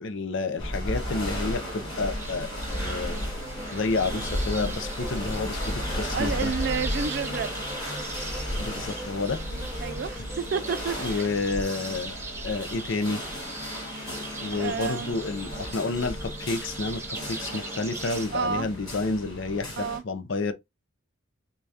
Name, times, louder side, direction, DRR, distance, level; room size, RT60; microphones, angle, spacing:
voice 1, 0.0-3.2 3.7-6.5 8.6-9.4 11.0-12.1 12.4-13.2 14.4-20.5, left 3 dB, 60° left, 0.6 m, -30 dB
sound 1, 0.6-20.0, equal, 20° left, 2.7 m, -34 dB
sound 2, 2.2-18.3, right 3 dB, 10° right, 0.9 m, -40 dB
voice 2, 6.1-7.6 9.8-11.2 14.5-15.2 18.3-18.7 19.8-20.0, right 6 dB, 50° right, 0.4 m, -30 dB
6.6 x 2.4 x 2.7 m
head